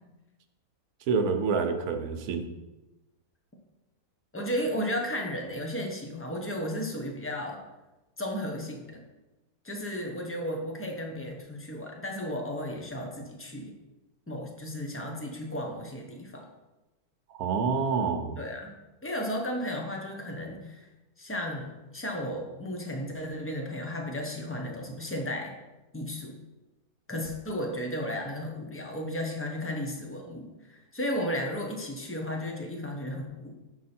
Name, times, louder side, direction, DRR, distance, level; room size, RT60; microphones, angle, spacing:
voice 1, 1.1-2.5 17.4-18.4, right 5 dB, 75° right, 5 dB, 1.2 m, -27 dB
voice 2, 4.3-7.6 8.2-9.0 9.6-13.7 14.3-16.5 18.4-18.7 19.0-20.9 21.2-25.5 25.9-26.4 27.1-33.6, equal, 15° left, 1 dB, 0.6 m, -34 dB
6.7 x 4.7 x 4.3 m, 1.1 s
omnidirectional pair, 1.6 m